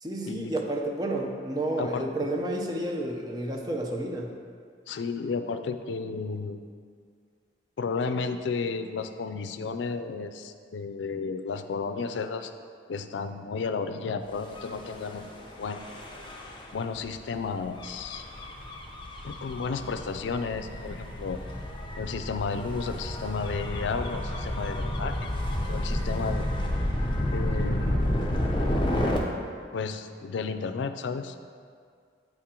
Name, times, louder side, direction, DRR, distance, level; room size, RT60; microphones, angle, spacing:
voice 1, 0.0-4.4, right 1 dB, 20° right, 1 dB, 0.6 m, -31 dB
voice 2, 4.9-6.6 7.8-12.5 12.9-15.9 16.7-18.3 19.2-21.4 22.0-25.3 25.7-26.4 27.3-28.2 29.7-31.4, left 4 dB, 90° left, 9 dB, 0.4 m, -33 dB
Gull seagull / Waves surf / Siren, 14.4-29.2, left 1 dB, 25° left, 0.7 m, -31 dB
9.0 x 3.7 x 4.3 m, 2.1 s
head